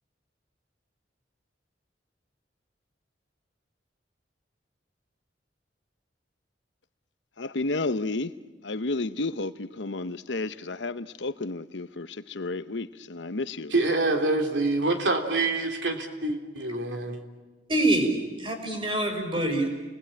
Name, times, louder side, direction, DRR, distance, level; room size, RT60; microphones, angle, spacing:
voice 1, 7.4-8.3 8.6-13.7, left 2 dB, 80° left, 12 dB, 1.0 m, -31 dB
voice 2, 13.7-17.2, right 2 dB, 80° right, 4 dB, 3.1 m, -26 dB
voice 3, 17.7-19.7, right 1 dB, 30° right, 3 dB, 5.7 m, -25 dB
30.0 x 21.0 x 9.0 m, 1.3 s
head